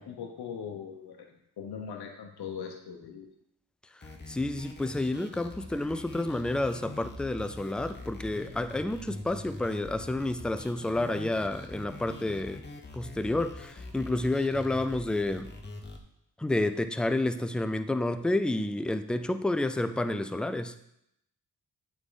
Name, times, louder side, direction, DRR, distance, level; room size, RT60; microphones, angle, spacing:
voice 1, 0.0-3.3, left 7 dB, 65° left, 3 dB, 0.9 m, -40 dB
voice 2, 3.9-12.6 12.9-15.5 16.4-20.8, left 2 dB, ahead, 10 dB, 0.3 m, -30 dB
sound 1, 4.0-16.0, left 2 dB, 25° left, 1.0 m, -44 dB
7.9 x 3.7 x 3.9 m, 0.78 s
cardioid pair, 60°, 41 cm